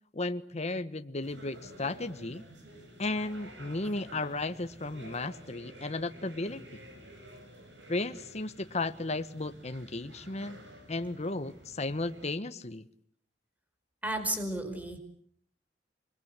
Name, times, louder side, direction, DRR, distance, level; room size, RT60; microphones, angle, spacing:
voice 1, 0.1-2.4 3.0-6.6 7.9-10.6 10.9-12.9, left 2 dB, 40° left, 10 dB, 1.2 m, -34 dB
sound 1, 1.2-12.3, right 1 dB, 80° right, 7.1 m, -51 dB
voice 2, 14.0-15.0, right 1 dB, 10° right, 6 dB, 5.1 m, -33 dB
28.0 x 22.0 x 8.2 m, 0.63 s
head